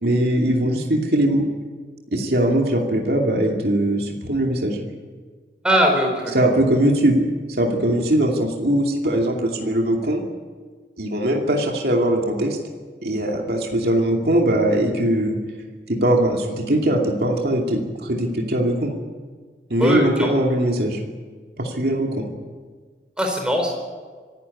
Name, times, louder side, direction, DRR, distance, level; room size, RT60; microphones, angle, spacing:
voice 1, 0.0-1.5 2.1-4.8 6.3-10.2 11.0-12.6 13.0-15.4 15.9-18.9 19.7-21.0 21.6-22.3, right 1 dB, 60° right, 0 dB, 2.5 m, -21 dB
voice 2, 5.6-6.3 19.8-20.3 23.2-23.7, equal, 5° right, 2 dB, 4.4 m, -20 dB
25.0 x 12.5 x 9.8 m, 1.5 s
head